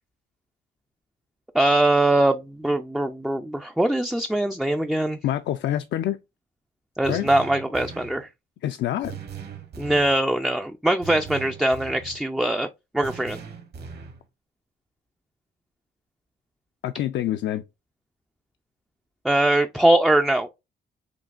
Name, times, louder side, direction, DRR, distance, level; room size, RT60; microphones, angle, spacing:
voice 1, 1.5-5.2 7.0-8.3 9.8-12.7 12.9-13.4 19.2-20.5, right 1 dB, ahead, 0.3 m, -22 dB
voice 2, 5.2-6.2 7.1-7.3 8.6-9.2 16.8-17.6, left 12 dB, 65° left, 0.4 m, -26 dB
sound 1, 7.0-8.2 9.0-10.2 11.0-12.2 13.0-14.2, right 7 dB, 55° right, 1.1 m, -39 dB
5.1 x 2.7 x 2.4 m
cardioid pair, 90°, 20 cm